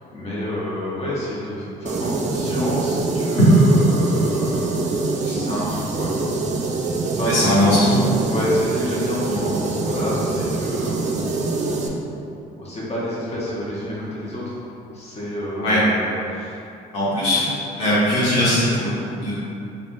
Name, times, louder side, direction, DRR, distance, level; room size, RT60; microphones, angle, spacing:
voice 1, 0.1-6.1 7.2-7.9 8.2-11.9 12.6-14.6 14.9-16.6, equal, 30° left, -7 dB, 0.9 m, -29 dB
sound 1, 1.9-11.9, right 3 dB, 35° right, 0.4 m, -24 dB
voice 2, 7.2-8.2 15.6-15.8 16.9-17.4 17.7-19.5, left 1 dB, 90° left, -11 dB, 1.1 m, -20 dB
3.4 x 2.3 x 2.5 m, 2.7 s
supercardioid pair, 65°, 20 cm